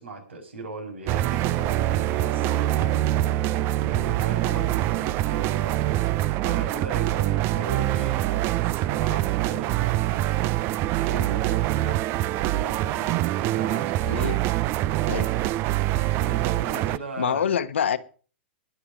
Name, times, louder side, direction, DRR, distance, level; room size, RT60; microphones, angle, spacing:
voice 1, 0.0-3.4 3.8-5.8 6.4-10.5 11.0-12.0 12.4-14.3 15.9-17.5, right 3 dB, 80° right, 6.2 m, -38 dB
sound 1, 1.1-17.0, right 15 dB, 35° right, 0.6 m, -24 dB
voice 2, 14.0-14.4 15.0-15.3 17.2-18.0, left 8 dB, 80° left, 1.1 m, -25 dB
20.5 x 7.0 x 5.2 m
hypercardioid pair, 120°, 6 cm